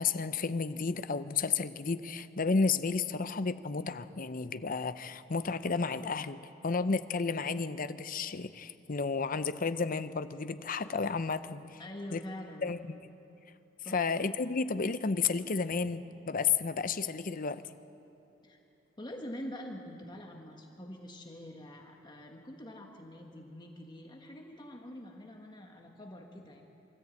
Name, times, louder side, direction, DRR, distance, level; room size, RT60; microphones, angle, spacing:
voice 1, 0.0-11.8 12.1-12.2 12.6-13.0 13.9-17.6, left 4 dB, 45° left, 12 dB, 0.7 m, -32 dB
voice 2, 11.8-12.7 13.8-14.0 18.4-18.6 19.0-26.6, left 1 dB, 25° left, 1 dB, 1.5 m, -45 dB
24.5 x 13.5 x 8.4 m, 2.9 s
head